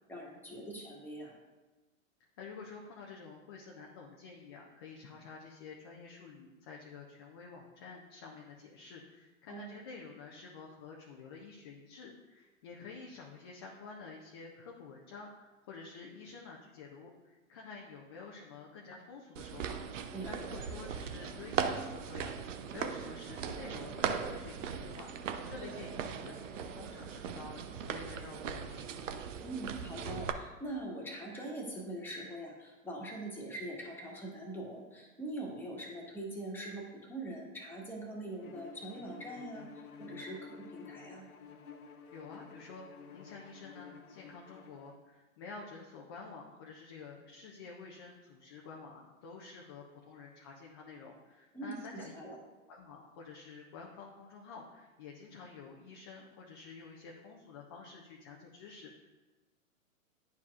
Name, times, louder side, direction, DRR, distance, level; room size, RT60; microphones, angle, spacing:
voice 1, 0.1-1.3 9.5-9.7 20.1-20.6 29.4-39.7 40.0-41.3 51.5-52.4, right 1 dB, 5° left, -3 dB, 1.4 m, -43 dB
voice 2, 2.4-28.9 42.1-42.9 43.1-52.2 52.7-59.1, left 4 dB, 20° left, -1 dB, 0.3 m, -50 dB
sound 1, 19.4-30.3, right 7 dB, 60° right, 0.7 m, -39 dB
Bowed string instrument, 38.4-45.0, left 5 dB, 85° left, 0.7 m, -51 dB
10.5 x 4.6 x 2.4 m, 1.2 s
hypercardioid pair, 120°, 42 cm